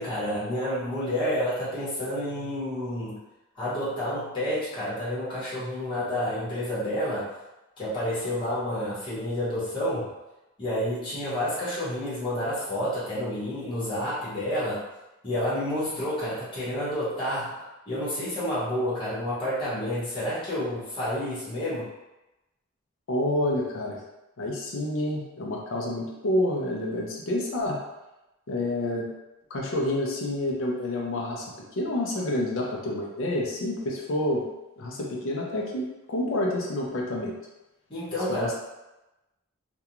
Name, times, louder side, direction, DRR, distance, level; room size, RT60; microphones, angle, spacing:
voice 1, 0.0-3.2 3.5-7.3 7.8-10.1 10.6-14.8 15.2-17.6 17.9-21.9 37.9-38.5, left 1 dB, 25° left, -10 dB, 1.0 m, -29 dB
voice 2, 23.1-24.0 24.4-27.8 28.5-29.1 29.5-31.5 31.8-34.4 34.8-37.3 38.3-38.5, left 1 dB, 65° left, -2 dB, 0.5 m, -28 dB
2.4 x 2.2 x 2.8 m, 0.99 s
head